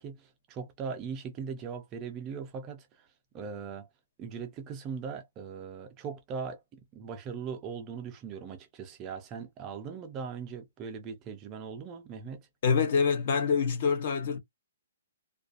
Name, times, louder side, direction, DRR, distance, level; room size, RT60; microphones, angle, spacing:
voice 1, 0.0-3.1 3.3-3.9 4.2-12.5, right 6 dB, 20° right, 0.4 m, -40 dB
voice 2, 12.6-14.4, left 6 dB, 40° left, 0.7 m, -26 dB
2.4 x 2.3 x 2.4 m
hypercardioid pair, 170°, 0 cm